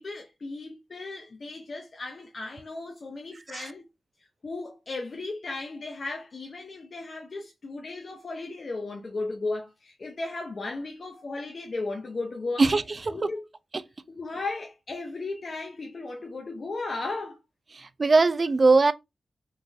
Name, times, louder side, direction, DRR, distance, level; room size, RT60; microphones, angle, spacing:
voice 1, 0.0-3.8 4.4-12.6 13.1-13.4 14.1-17.4, left 3 dB, 50° left, 0.6 m, -35 dB
voice 2, 18.0-18.9, right 3 dB, 40° right, 0.3 m, -19 dB
3.8 x 2.3 x 2.6 m
wide cardioid pair, 85°, 0 cm